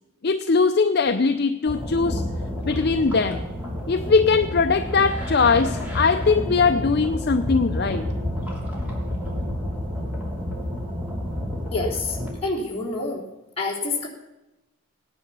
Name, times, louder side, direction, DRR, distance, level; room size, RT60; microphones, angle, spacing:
voice 1, 0.2-2.2 2.6-3.4 3.9-8.1, left 4 dB, 50° left, 8 dB, 0.5 m, -20 dB
sound 1, 1.7-12.3, left 1 dB, 5° right, 2.9 m, -29 dB
voice 2, 11.7-13.3 13.6-14.1, left 3 dB, 25° left, -5 dB, 3.3 m, -27 dB
17.0 x 10.0 x 6.8 m, 1.0 s
head